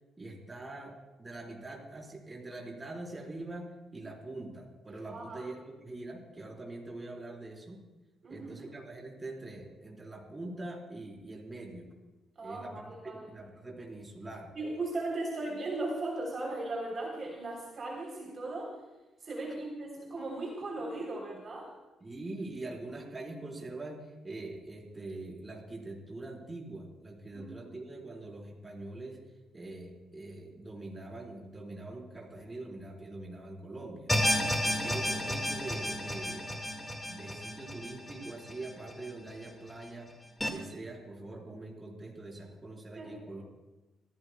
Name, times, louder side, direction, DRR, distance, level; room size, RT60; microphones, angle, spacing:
voice 1, 0.2-7.8 8.3-11.9 12.4-14.5 22.0-29.2 29.5-34.1 34.6-36.5 37.1-40.1 40.4-43.5, right 2 dB, 20° right, -1 dB, 4.1 m, -43 dB
voice 2, 5.1-5.4 8.2-8.7 12.4-13.2 14.6-18.7 19.2-21.7 27.3-27.5 43.0-43.2, right 2 dB, 40° right, -2 dB, 3.5 m, -37 dB
sound 1, 34.1-39.3 39.7-39.8 40.4-40.5, left 1 dB, 10° left, 1.9 m, -32 dB
26.5 x 14.0 x 2.3 m, 1.1 s
cardioid pair, 90°, 0 cm